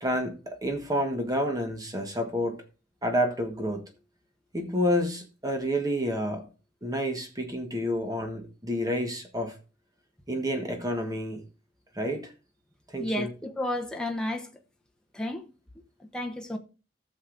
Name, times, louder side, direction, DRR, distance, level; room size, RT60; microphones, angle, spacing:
voice 1, 0.0-2.6 3.0-3.8 4.5-6.5 6.8-9.5 10.3-11.4 11.9-12.3 12.9-13.3, equal, 20° right, 1.3 m, -29 dB
voice 2, 13.0-14.5 15.1-15.4 16.1-16.6, left 1 dB, 5° left, 0.9 m, -31 dB
15.0 x 6.6 x 2.5 m
head